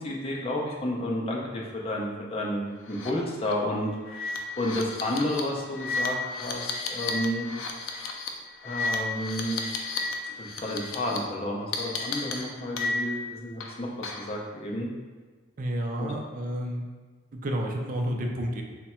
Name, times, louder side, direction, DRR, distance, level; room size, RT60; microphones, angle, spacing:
voice 1, 0.0-7.5 8.6-9.7 10.2-14.9 16.0-16.2, left 1 dB, 30° left, -2 dB, 0.5 m, -31 dB
sound 1, 2.9-3.1 3.4-3.5 4.1-10.1 10.4-11.2 11.7-13.2 13.6-14.4, left 3 dB, 80° left, 0.4 m, -33 dB
voice 2, 15.6-16.9 17.3-18.6, equal, 40° right, 1 dB, 0.4 m, -30 dB
3.4 x 2.2 x 4.2 m, 1.4 s
head